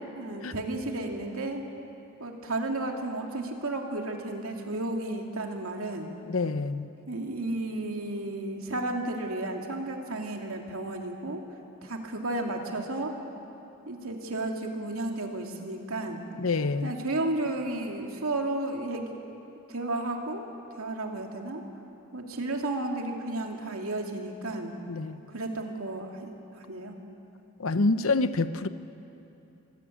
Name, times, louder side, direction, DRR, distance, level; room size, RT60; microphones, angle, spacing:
voice 1, 0.1-1.6 2.2-6.1 7.1-11.4 11.8-13.1 13.9-16.2 16.8-19.0 19.7-20.5 20.8-21.6 22.1-24.8 25.3-26.3 26.5-26.9, right 2 dB, 80° right, 2 dB, 2.6 m, -33 dB
voice 2, 6.3-6.9 16.4-16.9 24.9-25.2 27.6-28.7, left 3 dB, 75° left, 13 dB, 0.8 m, -27 dB
24.5 x 17.0 x 8.6 m, 3.0 s
head